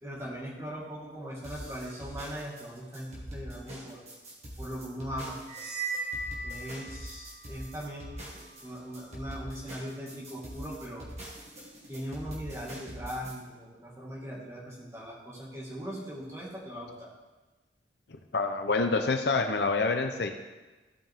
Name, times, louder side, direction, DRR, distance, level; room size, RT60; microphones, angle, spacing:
voice 1, 0.0-4.0 4.6-5.4 6.4-11.1 11.9-17.1, equal, 15° right, -5 dB, 2.1 m, -40 dB
sound 1, 1.4-13.3, equal, 35° right, 2.0 m, -43 dB
sound 2, 5.5-7.3, right 3 dB, 85° right, 2.7 m, -36 dB
voice 2, 18.3-20.3, left 3 dB, 60° left, 5 dB, 0.7 m, -27 dB
15.0 x 5.4 x 3.7 m, 1.2 s
head